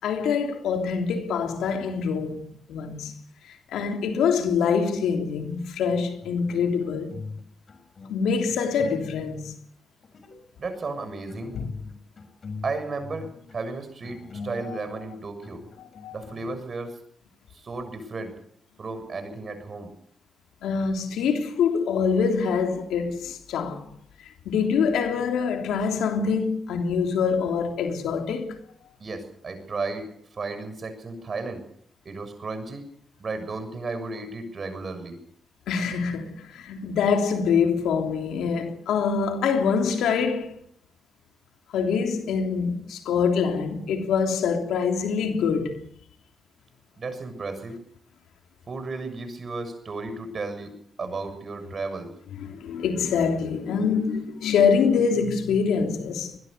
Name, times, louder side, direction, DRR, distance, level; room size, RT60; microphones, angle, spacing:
voice 1, 0.0-3.1 3.4-7.2 8.1-9.5 11.5-11.7 14.6-14.8 15.8-16.2 20.6-23.8 24.2-28.6 35.7-40.6 41.7-45.9 52.4-56.4, left 6 dB, 90° left, 3.2 m, -25 dB
sound 1, 5.9-7.4 7.7-9.5 10.0-10.4 11.0-16.6, left 4 dB, 55° left, 6.4 m, -42 dB
voice 2, 10.6-11.6 12.6-15.6 16.1-17.0 17.5-18.4 18.8-19.9 29.0-31.7 32.1-32.9 33.2-35.2 47.0-47.8 48.7-52.2, right 3 dB, 50° right, 7.0 m, -34 dB
23.0 x 20.5 x 6.8 m
supercardioid pair, 60°, 0 cm